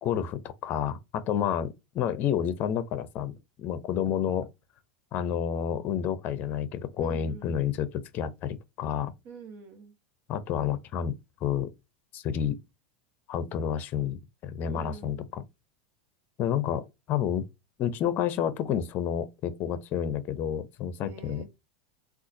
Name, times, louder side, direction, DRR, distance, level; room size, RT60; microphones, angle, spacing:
voice 1, 0.0-3.3 3.6-4.5 5.1-9.1 10.3-11.2 11.4-11.7 12.1-12.6 13.3-15.4 16.4-17.4 17.8-21.4, left 9 dB, 45° left, 0.6 m, -30 dB
voice 2, 7.0-7.6 9.2-9.9 14.6-15.2 21.0-21.4, right 5 dB, 50° right, 1.2 m, -45 dB
3.8 x 2.4 x 2.7 m
supercardioid pair, 115°, 5 cm